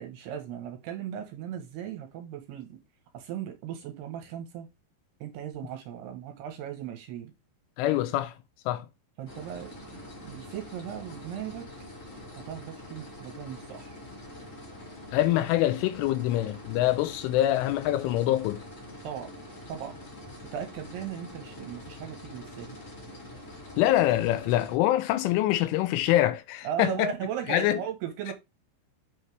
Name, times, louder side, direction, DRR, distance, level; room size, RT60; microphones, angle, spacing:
voice 1, 0.0-2.8 3.1-4.7 5.2-7.3 9.2-11.7 12.5-14.0 19.0-19.3 19.7-20.0 20.5-22.8 26.6-28.3, right 9 dB, 70° right, 2.8 m, -37 dB
voice 2, 7.8-8.3 8.7-8.9 15.1-18.6 23.8-27.1 27.5-27.8, left 14 dB, 90° left, 3.4 m, -25 dB
sound 1, 9.3-24.8, left 1 dB, 30° left, 2.0 m, -45 dB
8.8 x 5.3 x 3.4 m
omnidirectional pair, 5.5 m